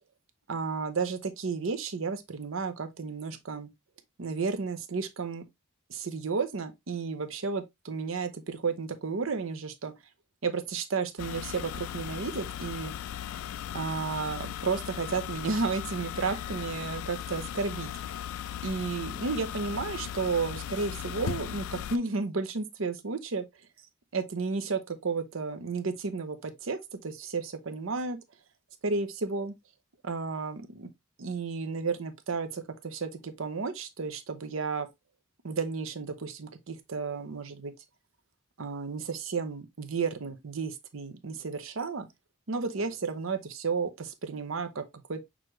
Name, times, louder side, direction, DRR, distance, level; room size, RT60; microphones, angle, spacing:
voice 1, 0.5-3.7 4.2-5.4 5.9-9.9 10.4-12.9 13.7-17.9 18.6-23.4 24.1-28.2 28.8-29.5 30.0-30.9 31.2-34.9 35.4-37.7 38.6-42.1 42.5-44.8 45.1-45.2, right 4 dB, 75° right, 0.7 m, -32 dB
sound 1, 11.2-22.0, left 10 dB, 85° left, 0.3 m, -37 dB
6.1 x 2.5 x 3.1 m
head